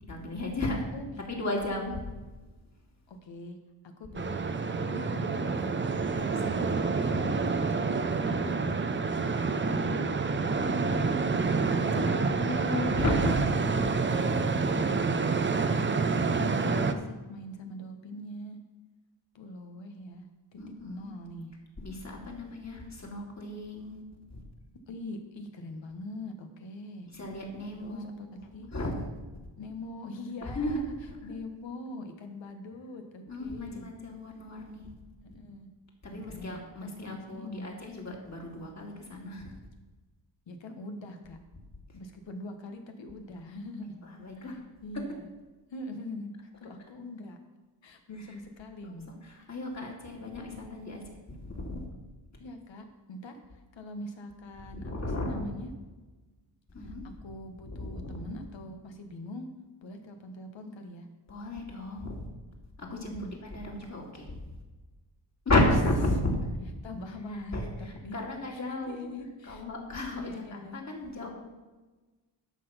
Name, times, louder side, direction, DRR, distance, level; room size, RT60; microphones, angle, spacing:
voice 1, 0.1-0.8 1.3-2.0 6.1-7.5 11.5-13.5 20.6-21.1 21.8-24.0 24.3-24.4 27.1-28.4 28.7-29.1 30.4-31.3 33.3-34.9 36.0-39.5 44.0-44.6 44.9-45.0 48.2-48.3 49.2-51.8 54.7-55.5 56.7-57.0 57.7-58.3 61.3-62.3 62.8-64.6 65.5-66.5 67.3-69.2 69.4-71.3, left 1 dB, 35° left, -1 dB, 2.5 m, -34 dB
voice 2, 3.1-3.6 3.8-5.7 6.4-8.0 8.2-9.1 9.4-12.1 14.1-14.9 15.8-17.0 17.3-18.6 19.3-20.2 20.5-21.5 24.9-27.1 27.8-28.7 29.6-30.9 31.2-33.9 35.2-35.7 36.1-37.8 40.5-41.4 41.9-44.0 44.4-45.3 45.7-46.3 46.6-47.4 47.8-49.1 49.4-49.5 49.8-49.9 52.4-53.4 53.7-55.7 56.8-56.9 57.2-59.5 59.8-61.1 63.1-63.3 65.5-65.7 66.8-68.2 68.5-69.6 70.1-70.8, left 1 dB, 70° left, 5 dB, 1.5 m, -43 dB
sound 1, 4.1-16.9, right 4 dB, 25° right, 0.7 m, -28 dB
11.0 x 6.0 x 5.7 m, 1.2 s
cardioid pair, 90°, 47 cm